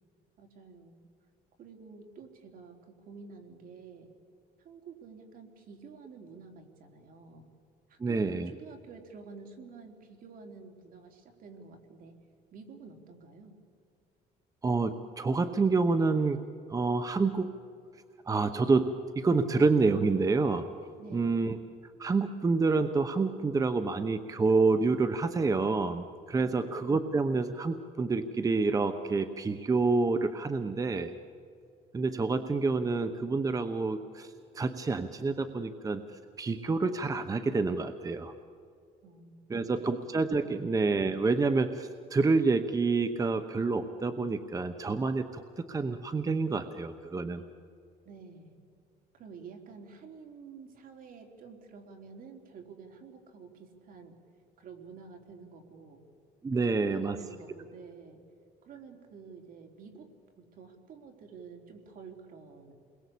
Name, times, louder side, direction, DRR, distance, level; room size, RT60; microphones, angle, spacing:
voice 1, 0.4-1.1 1.6-4.1 4.6-7.5 7.9-12.1 12.5-13.5 21.0-21.3 26.4-26.8 39.0-39.9 40.4-40.7 48.1-48.6 49.1-54.2 54.6-56.0 56.7-58.2 58.6-60.1 60.4-62.7, right 5 dB, 55° right, 4 dB, 3.7 m, -50 dB
voice 2, 8.0-8.5 14.6-16.4 16.7-17.5 18.3-20.6 21.1-21.6 22.0-31.1 31.9-38.3 39.5-47.4 56.4-57.2, right 3 dB, 20° right, 9 dB, 0.9 m, -28 dB
29.5 x 21.5 x 8.5 m, 2.5 s
cardioid pair, 135°, 17 cm